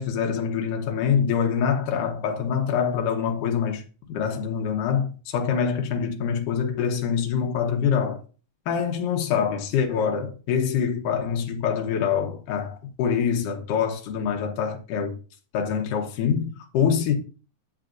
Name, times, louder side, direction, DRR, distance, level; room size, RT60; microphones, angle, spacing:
voice 1, 0.0-3.8 4.1-8.2 8.7-15.2 15.5-17.1, left 7 dB, 70° left, 2.5 m, -25 dB
8.7 x 7.5 x 2.6 m
omnidirectional pair, 4.3 m